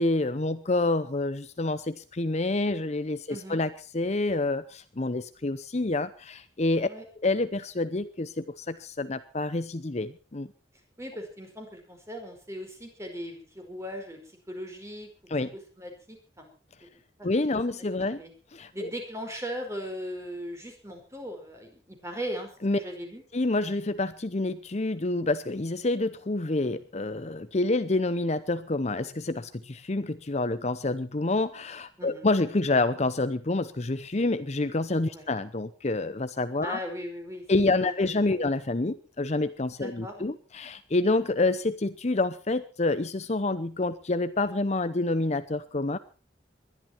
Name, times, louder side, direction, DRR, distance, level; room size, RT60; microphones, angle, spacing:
voice 1, 0.0-6.9 7.2-10.5 15.3-15.5 17.2-18.2 18.5-18.9 22.6-22.8 23.3-36.8 37.5-46.0, left 2 dB, 40° left, 12 dB, 0.8 m, -28 dB
voice 2, 3.3-3.6 6.9-7.0 11.0-14.2 14.5-15.1 15.8-16.5 17.2-17.3 18.2-18.3 18.7-23.2 32.0-32.2 35.1-35.3 36.6-38.5 39.8-40.3, equal, 15° right, 4 dB, 4.9 m, -38 dB
21.0 x 12.0 x 4.6 m, 0.35 s
head